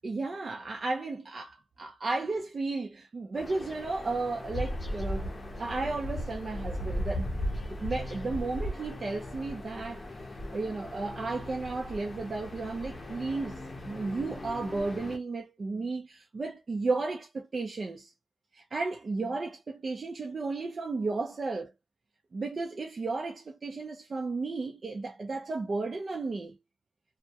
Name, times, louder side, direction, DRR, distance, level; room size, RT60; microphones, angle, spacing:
voice 1, 0.0-5.3 5.6-7.3 7.7-13.6 13.9-18.1 18.5-21.7 22.3-26.6, right 3 dB, 50° right, 0.4 m, -34 dB
sound 1, 3.3-15.2, left 1 dB, 35° left, 0.6 m, -37 dB
2.2 x 2.0 x 2.7 m
wide cardioid pair, 115°, 0 cm